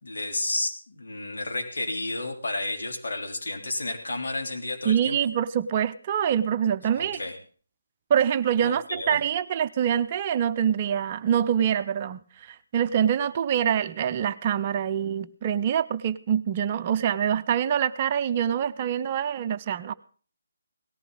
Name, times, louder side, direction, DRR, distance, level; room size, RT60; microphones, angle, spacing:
voice 1, 0.0-5.2 6.9-7.4 8.6-9.2, left 2 dB, 65° left, 2 dB, 3.4 m, -31 dB
voice 2, 4.8-7.2 8.1-19.9, right 9 dB, 30° right, 11 dB, 0.6 m, -25 dB
18.0 x 14.5 x 4.0 m, 0.42 s
figure-of-eight pair, 145°, 0 cm